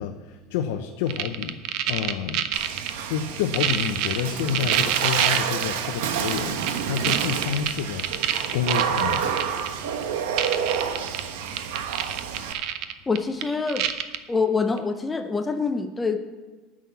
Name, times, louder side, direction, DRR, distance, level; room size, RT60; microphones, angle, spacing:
voice 1, 0.0-1.6 1.8-2.4 3.1-8.1 8.5-9.3, left 8 dB, 85° left, 4 dB, 0.8 m, -29 dB
sound 1, 1.1-2.9 3.4-5.6 6.3-9.7 10.0-10.1 10.4-11.2 11.5-14.2 14.8-14.9, right 11 dB, 50° right, 0.7 m, -26 dB
Water / Splash splatter, 2.5-12.5, right 7 dB, 90° right, 1.1 m, -29 dB
voice 2, 13.1-13.9 14.3-16.2, left 4 dB, 10° left, 7 dB, 0.6 m, -25 dB
9.4 x 6.4 x 8.3 m, 1.3 s
cardioid pair, 165°, 0 cm